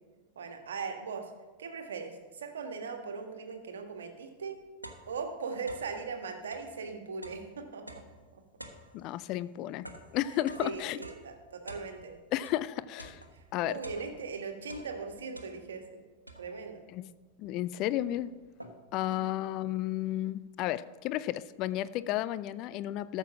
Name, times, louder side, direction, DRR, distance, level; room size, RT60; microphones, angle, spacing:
voice 1, 0.3-1.3 1.6-4.6 5.1-8.0 8.3-8.4 10.3-12.1 13.3-16.0 16.4-16.8 19.1-19.3, right 5 dB, 65° right, 5 dB, 1.5 m, -39 dB
sound 1, 3.9-4.0 4.4-6.0 6.4-12.7 13.0-14.4 14.6-15.9 16.3-16.8 17.4-17.5 17.8-19.0, equal, 85° right, 1.1 m, -50 dB
voice 2, 8.9-11.0 12.3-13.2 13.5-13.8 16.9-17.1 17.4-18.3 18.9-23.2, left 14 dB, 40° left, 17 dB, 0.4 m, -33 dB
13.5 x 6.7 x 5.9 m, 1.3 s
figure-of-eight pair, 90°, 0 cm